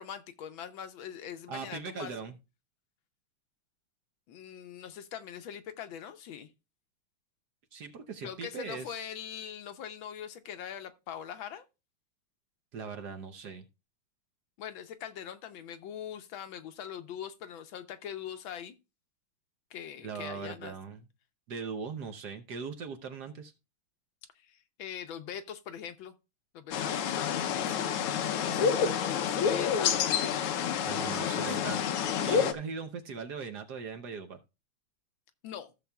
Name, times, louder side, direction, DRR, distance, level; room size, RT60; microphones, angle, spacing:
voice 1, 0.0-2.3 4.3-6.5 8.2-11.6 14.6-18.7 19.7-20.7 24.3-26.1 26.5-30.0 31.2-31.7 35.4-35.7, left 9 dB, 75° left, 1.5 m, -42 dB
voice 2, 1.5-2.4 7.7-9.1 12.7-13.7 20.0-21.0 21.5-23.5 30.9-31.8 32.2-34.4, right 5 dB, 60° right, 1.2 m, -39 dB
sound 1, 26.7-32.5, left 7 dB, 90° left, 1.7 m, -29 dB
15.0 x 6.9 x 2.3 m
omnidirectional pair, 2.4 m